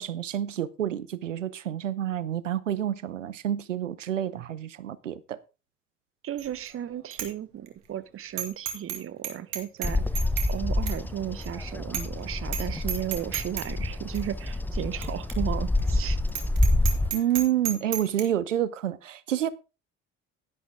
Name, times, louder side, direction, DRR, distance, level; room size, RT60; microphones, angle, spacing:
voice 1, 0.0-5.4 17.1-19.5, right 11 dB, 80° right, 0.7 m, -28 dB
voice 2, 6.2-10.0 10.5-16.2, right 11 dB, 35° right, 1.0 m, -34 dB
Bicycle bell, 6.4-6.7 7.1-7.3 7.7-7.8 8.4-9.0 9.2-10.5 10.9-11.0 11.4-11.5 11.9-12.2 12.5-12.6 12.9-13.7 14.1-14.2 15.0-15.1 15.3-15.4 15.8-15.9 16.3-18.2, right 9 dB, 65° right, 2.2 m, -32 dB
Bird vocalization bird call bird song, 9.8-17.1, left 1 dB, 5° left, 0.8 m, -27 dB
11.5 x 11.0 x 3.6 m
figure-of-eight pair, 55°, 37 cm